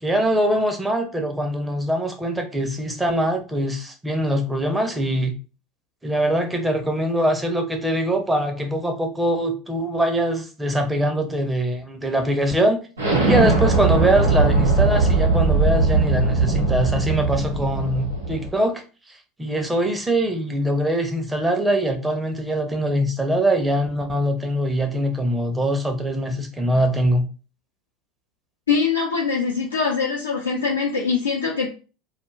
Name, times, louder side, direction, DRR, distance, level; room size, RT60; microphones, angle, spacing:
voice 1, 0.0-5.3 6.0-12.8 13.2-27.3, right 1 dB, 10° right, 5 dB, 0.7 m, -23 dB
Explosion, 13.0-18.5, right 3 dB, 80° right, 0.7 m, -20 dB
voice 2, 28.7-31.7, left 5 dB, 85° left, -3 dB, 0.5 m, -23 dB
2.4 x 2.1 x 3.1 m, 0.35 s
figure-of-eight pair, 75°, 0 cm